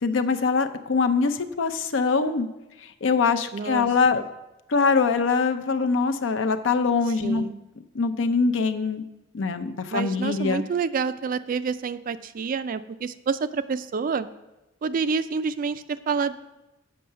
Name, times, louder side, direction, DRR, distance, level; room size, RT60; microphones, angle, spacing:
voice 1, 0.0-2.5 2.8-4.2 4.7-7.4 7.9-9.0 9.3-10.6, left 4 dB, 70° left, 8 dB, 0.6 m, -23 dB
voice 2, 3.5-4.2 7.2-7.6 9.9-14.3 14.8-16.3, right 5 dB, 45° right, 13 dB, 0.4 m, -28 dB
7.7 x 5.5 x 6.8 m, 1.0 s
head